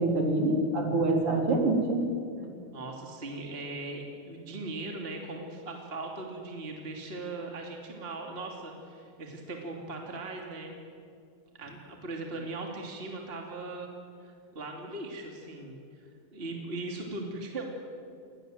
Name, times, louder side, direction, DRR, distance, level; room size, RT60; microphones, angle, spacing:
voice 1, 0.0-2.0 2.4-2.5, right 2 dB, 50° right, 1 dB, 4.6 m, -26 dB
voice 2, 2.7-10.7 11.5-13.9 14.2-15.7 16.3-17.6, right 2 dB, 20° right, 1 dB, 2.8 m, -39 dB
28.5 x 21.0 x 7.8 m, 2.3 s
omnidirectional pair, 3.4 m